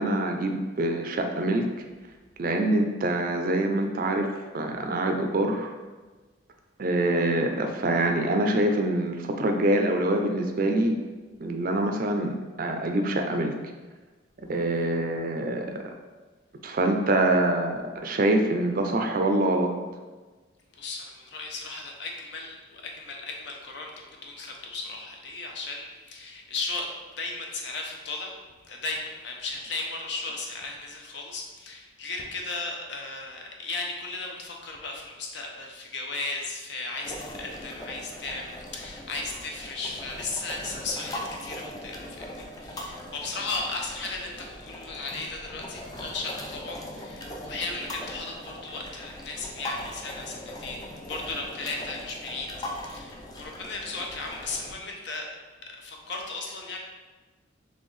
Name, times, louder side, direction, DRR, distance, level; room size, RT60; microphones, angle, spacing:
voice 1, 0.0-1.7 2.4-4.3 4.5-5.7 6.8-10.9 11.4-13.5 14.5-15.7 16.6-19.7, right 1 dB, 45° right, 4 dB, 0.4 m, -25 dB
voice 2, 20.7-28.3 28.6-55.3 55.8-56.8, left 3 dB, 60° left, 1 dB, 0.7 m, -36 dB
sound 1, 37.0-54.7, left 1 dB, 20° left, 0.4 m, -40 dB
4.4 x 3.4 x 3.2 m, 1.3 s
head